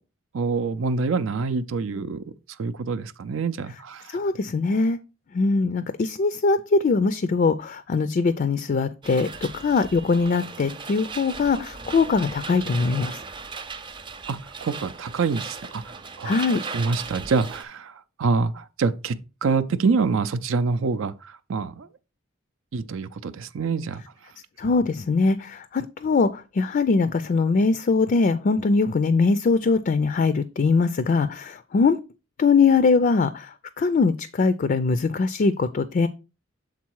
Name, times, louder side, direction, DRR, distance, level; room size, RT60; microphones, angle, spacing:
voice 1, 0.3-2.2 2.6-4.2 14.3-21.9 22.7-24.0, right 4 dB, 75° right, 0.5 m, -26 dB
voice 2, 4.1-5.0 5.3-13.2 16.2-16.6 24.6-32.0 32.4-36.1, left 4 dB, 45° left, 0.4 m, -22 dB
sound 1, 9.0-17.6, right 4 dB, 25° right, 0.5 m, -37 dB
7.3 x 3.8 x 4.6 m
head